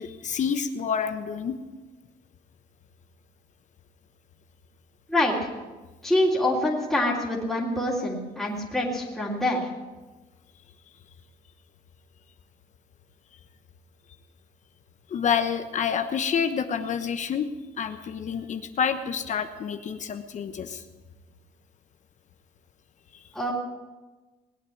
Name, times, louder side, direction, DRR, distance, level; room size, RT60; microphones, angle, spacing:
voice 1, 0.0-1.6 15.1-17.5 17.8-20.8 23.1-23.2, left 7 dB, 45° left, 8 dB, 1.1 m, -28 dB
voice 2, 5.1-5.5 6.0-9.7 23.3-23.5, left 1 dB, ahead, -7 dB, 3.3 m, -25 dB
20.0 x 8.1 x 8.7 m, 1.2 s
cardioid pair, 110°, 17 cm